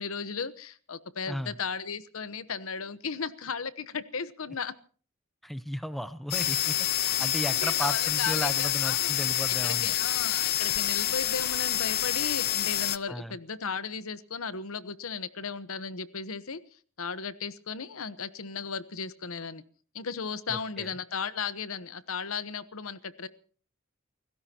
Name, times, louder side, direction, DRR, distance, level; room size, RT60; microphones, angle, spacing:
voice 1, 0.0-4.7 7.6-9.2 9.6-16.6 17.0-19.6 19.9-23.3, left 5 dB, 80° left, 15 dB, 1.1 m, -35 dB
voice 2, 5.4-9.9 13.1-13.4 20.5-20.9, equal, ahead, 13 dB, 0.8 m, -35 dB
sound 1, 6.3-13.0, left 12 dB, 50° left, 0.7 m, -27 dB
30.0 x 16.0 x 2.9 m, 0.42 s
head